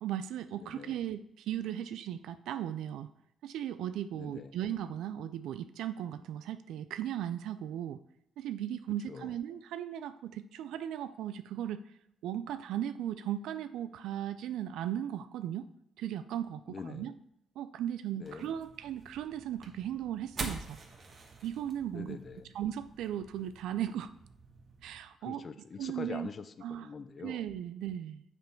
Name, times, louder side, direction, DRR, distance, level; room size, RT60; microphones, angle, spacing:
voice 1, 0.0-3.1 3.4-8.0 8.4-11.8 12.2-15.7 16.0-17.1 17.6-20.8 21.4-22.2 22.5-24.1 24.8-25.4 25.8-26.3 26.6-26.9 27.2-28.2, right 11 dB, 85° right, 12 dB, 0.3 m, -37 dB
voice 2, 0.6-1.0 4.1-4.5 9.1-9.3 16.7-17.1 18.2-18.5 21.9-22.5 25.2-27.4, left 5 dB, 45° left, 11 dB, 0.4 m, -44 dB
sound 1, 18.2-25.0, right 3 dB, 45° right, 1.3 m, -46 dB
6.7 x 5.4 x 4.5 m, 0.77 s
cardioid pair, 90°, 0 cm